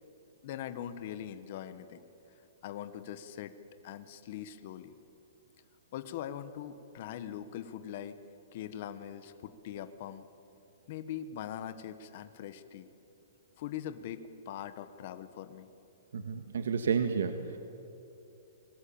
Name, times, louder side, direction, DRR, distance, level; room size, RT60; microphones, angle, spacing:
voice 1, 0.4-2.0 2.6-3.5 3.8-4.9 5.9-8.2 8.5-10.3 10.9-12.9 13.6-15.8, left 10 dB, 40° left, 10 dB, 1.3 m, -42 dB
voice 2, 16.1-17.6, right 6 dB, 90° right, 7 dB, 1.8 m, -31 dB
28.5 x 21.5 x 8.8 m, 3.0 s
hypercardioid pair, 170°, 0 cm